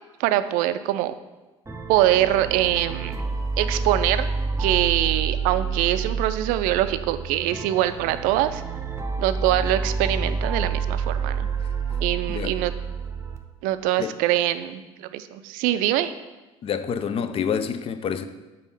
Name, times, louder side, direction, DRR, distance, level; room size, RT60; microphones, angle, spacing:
voice 1, 0.2-1.1 1.9-3.2 3.6-4.3 4.6-8.6 9.2-11.5 12.0-12.7 13.6-16.1, right 13 dB, 60° right, 0.4 m, -23 dB
sound 1, 1.7-13.4, right 5 dB, 15° right, 0.7 m, -28 dB
voice 2, 12.3-12.6 14.0-14.2 16.6-18.2, left 7 dB, 35° left, 0.5 m, -28 dB
5.3 x 4.1 x 5.3 m
hypercardioid pair, 60°, 16 cm